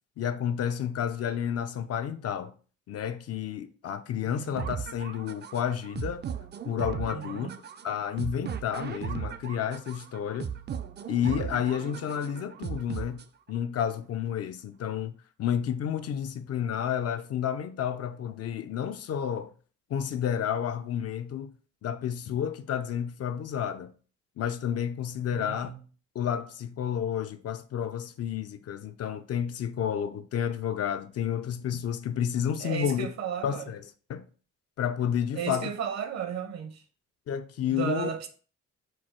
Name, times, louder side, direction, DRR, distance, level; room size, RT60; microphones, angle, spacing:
voice 1, 0.2-2.5 2.9-6.2 6.6-7.5 7.8-10.5 11.1-19.5 19.9-21.5 21.8-23.9 24.4-25.7 26.1-33.1 33.4-33.8 34.1-34.3 34.8-35.7 37.3-38.1, left 9 dB, 55° left, 0.5 m, -31 dB
sound 1, 4.6-13.6, right 8 dB, 35° right, 0.4 m, -37 dB
voice 2, 7.1-7.6 25.3-25.8 32.6-33.7 35.3-36.8 37.7-38.3, right 8 dB, 60° right, 0.9 m, -34 dB
4.5 x 2.3 x 4.4 m
cardioid pair, 90°, 30 cm